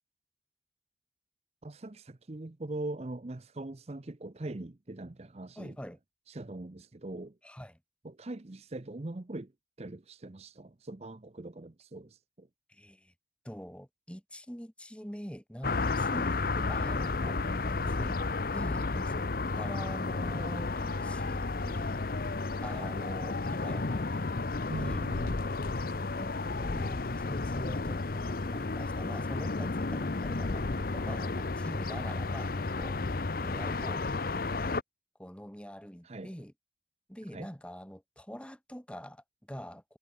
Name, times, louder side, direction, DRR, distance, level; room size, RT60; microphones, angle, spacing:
voice 1, 1.6-5.8 6.3-7.3 8.0-9.5 9.8-12.5 22.6-22.9 24.7-25.5 36.0-36.3 37.3-37.5, right 2 dB, 35° right, 0.7 m, -41 dB
voice 2, 5.6-6.0 7.4-7.8 12.7-13.1 13.4-18.2 18.5-19.2 19.5-22.0 22.6-24.3 24.8-25.1 26.1-33.0 33.4-34.8 35.2-36.5 37.1-40.0, equal, 5° left, 2.6 m, -44 dB
sound 1, 15.6-34.8, left 3 dB, 50° left, 0.7 m, -32 dB
head